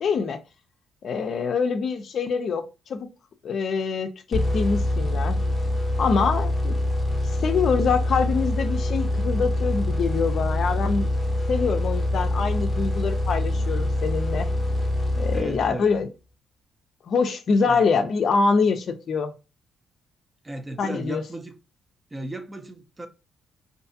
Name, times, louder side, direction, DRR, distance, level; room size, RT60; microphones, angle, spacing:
voice 1, 0.0-0.4 1.0-2.6 2.9-3.1 3.4-5.4 6.0-6.8 7.4-11.1 11.5-14.5 15.2-16.1 17.1-19.3 20.8-21.2, left 5 dB, 60° left, 0.4 m, -24 dB
sound 1, 4.3-16.0, left 1 dB, 20° left, 0.7 m, -25 dB
voice 2, 15.3-15.9 17.6-17.8 20.4-21.5 22.1-23.1, right 1 dB, 15° right, 0.4 m, -35 dB
2.5 x 2.3 x 2.6 m
cardioid pair, 90°, 0 cm